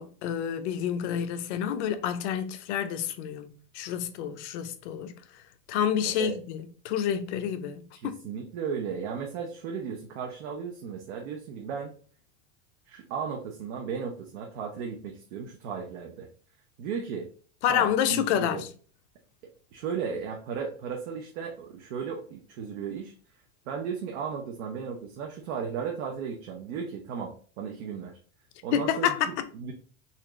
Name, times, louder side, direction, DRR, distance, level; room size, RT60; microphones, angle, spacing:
voice 1, 0.0-5.1 5.7-8.2 17.6-18.7 28.7-29.4, left 9 dB, 60° left, 0.6 m, -29 dB
voice 2, 8.0-11.9 12.9-16.3 16.8-17.3 17.7-18.6 19.7-23.1 23.7-28.2 28.6-29.7, right 6 dB, 60° right, 0.8 m, -35 dB
4.2 x 2.5 x 3.0 m
supercardioid pair, 165°, 39 cm